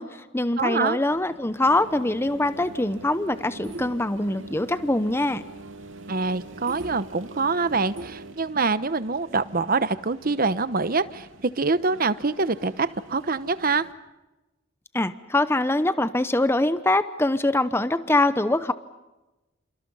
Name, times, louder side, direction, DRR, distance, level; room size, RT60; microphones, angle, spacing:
voice 1, 0.0-5.4 14.9-18.7, left 2 dB, 10° left, 12 dB, 0.8 m, -23 dB
voice 2, 0.6-1.0 6.1-13.9, right 4 dB, 45° right, 14 dB, 1.0 m, -25 dB
sound 1, 1.1-13.9, right 2 dB, 80° right, 2.9 m, -50 dB
sound 2, 1.6-8.3, right 2 dB, 60° right, 1.2 m, -41 dB
29.5 x 28.0 x 5.6 m, 1.0 s
head